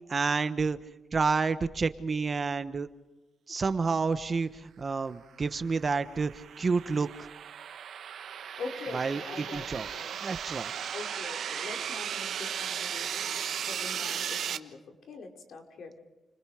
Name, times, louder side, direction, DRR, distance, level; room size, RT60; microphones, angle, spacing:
voice 1, 0.1-0.8 1.1-2.9 3.5-6.3 6.6-7.1 8.9-9.9 10.2-10.7, right 4 dB, 35° right, 11 dB, 1.2 m, -29 dB
sound 1, 5.6-14.6, right 8 dB, 70° right, 1.3 m, -36 dB
voice 2, 8.6-10.2 10.9-13.4 13.7-16.0, left 3 dB, 70° left, 2 dB, 5.2 m, -43 dB
30.0 x 27.0 x 5.1 m, 1.1 s
cardioid pair, 125°, 0 cm